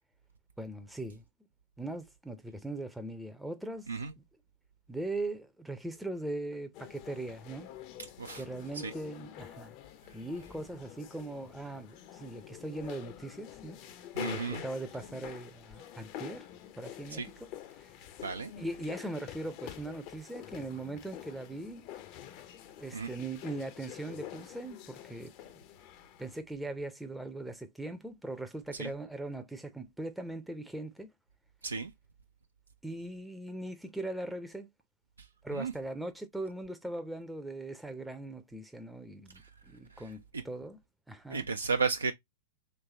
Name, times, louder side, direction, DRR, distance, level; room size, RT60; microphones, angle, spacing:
voice 1, 0.6-1.2 1.8-3.9 4.2-4.3 4.9-7.7 8.3-9.7 10.1-16.5 16.8-17.9 18.6-21.9 22.8-25.3 26.2-31.1 32.8-34.7 35.4-40.8 41.1-41.5, right 2 dB, 5° right, 0.5 m, -40 dB
sound 1, 6.7-26.4, left 11 dB, 45° left, 0.6 m, -47 dB
voice 2, 14.2-14.6 17.1-17.3 18.2-18.5 22.9-23.1 28.8-28.9 31.6-31.9 35.5-35.7 40.3-40.4 41.3-42.1, right 4 dB, 90° right, 0.4 m, -33 dB
3.2 x 3.2 x 2.8 m
hypercardioid pair, 105°, 0 cm